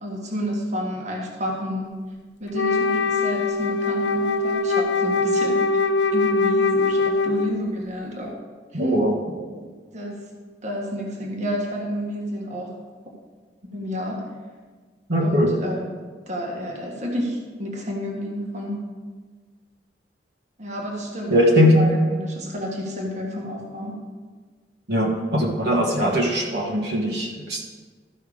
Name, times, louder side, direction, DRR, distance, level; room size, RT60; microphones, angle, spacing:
voice 1, 0.0-1.9 2.4-5.8 6.1-8.3 8.7-9.0 9.9-10.2 10.6-12.7 13.7-14.2 15.2-15.9 16.3-18.9 20.6-24.0, equal, 40° right, -1 dB, 1.5 m, -30 dB
Wind instrument woodwind instrument, 2.5-7.7, left 3 dB, 65° left, 0.5 m, -22 dB
voice 2, 8.7-9.2 15.1-15.5 21.3-21.8 24.9-27.6, equal, 60° right, -2 dB, 1.5 m, -20 dB
13.0 x 5.7 x 4.9 m, 1.4 s
head